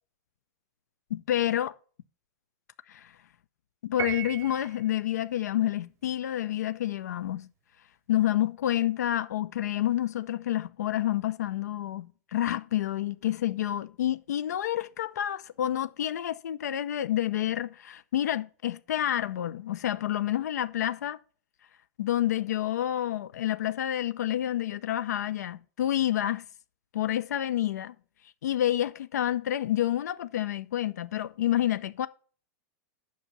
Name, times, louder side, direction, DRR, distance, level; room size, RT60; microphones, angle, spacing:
voice 1, 1.1-1.7 2.9-3.1 3.8-7.5 8.1-21.2 22.0-26.4 26.9-27.9 28.4-32.1, left 12 dB, 85° left, 0.5 m, -29 dB
Piano, 4.0-4.9, right 12 dB, 35° right, 0.6 m, -35 dB
8.0 x 6.6 x 6.0 m
hypercardioid pair, 135°, 9 cm